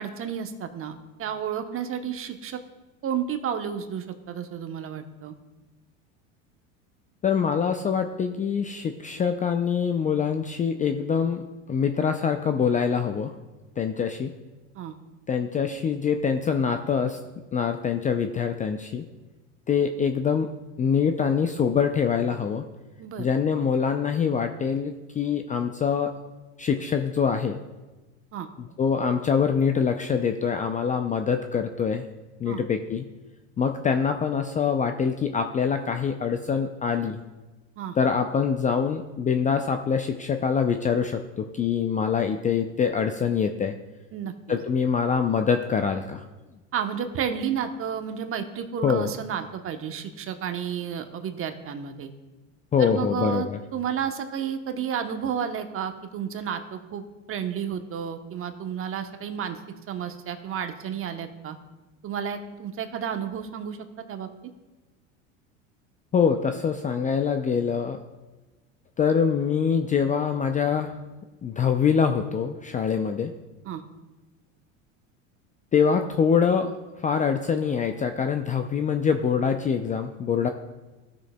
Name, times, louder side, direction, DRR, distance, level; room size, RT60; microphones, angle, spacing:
voice 1, 0.0-2.6 3.0-5.3 14.7-14.9 23.0-23.3 28.3-28.5 32.5-32.6 37.8-38.0 44.1-44.6 46.7-52.1 52.8-59.6 59.9-61.6 62.0-63.8 64.1-64.3 73.6-73.8, right 8 dB, 35° right, 7 dB, 0.9 m, -31 dB
voice 2, 7.2-13.3 13.8-14.3 15.3-17.2 17.5-19.0 19.7-20.5 20.8-22.6 23.2-26.1 26.6-27.6 28.6-32.0 32.4-33.0 33.6-37.2 38.0-43.7 44.5-46.3 48.8-49.1 52.7-53.6 66.1-68.0 69.0-71.0 71.4-73.3 75.7-76.7 77.0-80.5, left 6 dB, 20° left, 6 dB, 0.4 m, -24 dB
16.5 x 6.2 x 2.2 m, 1.1 s
hypercardioid pair, 95°, 38 cm